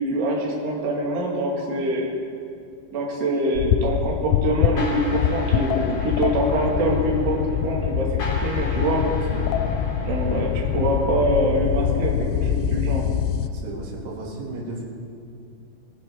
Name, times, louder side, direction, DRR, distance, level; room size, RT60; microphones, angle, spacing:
voice 1, 0.0-2.1 2.9-7.4 7.6-8.1 8.4-9.0 10.1-13.1, right 1 dB, 45° right, -2 dB, 2.4 m, -24 dB
sound 1, 3.6-13.5, left 9 dB, 90° left, 3.3 m, -24 dB
sound 2, 4.8-11.6, left 2 dB, 40° left, 4.0 m, -37 dB
voice 2, 9.0-9.6 13.5-14.8, right 2 dB, 60° right, -4 dB, 4.6 m, -35 dB
22.5 x 14.5 x 3.8 m, 2.4 s
omnidirectional pair, 5.8 m